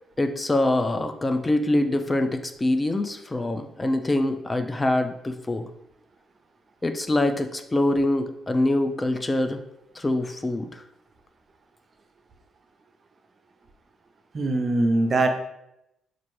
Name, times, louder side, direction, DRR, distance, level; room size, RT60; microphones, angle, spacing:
voice 1, 0.2-5.7 6.8-9.6 10.0-10.8, left 1 dB, 20° left, 7 dB, 0.3 m, -24 dB
voice 2, 14.3-15.3, right 2 dB, 40° right, 5 dB, 0.5 m, -22 dB
4.4 x 2.5 x 3.1 m, 0.82 s
cardioid pair, 90°, 0 cm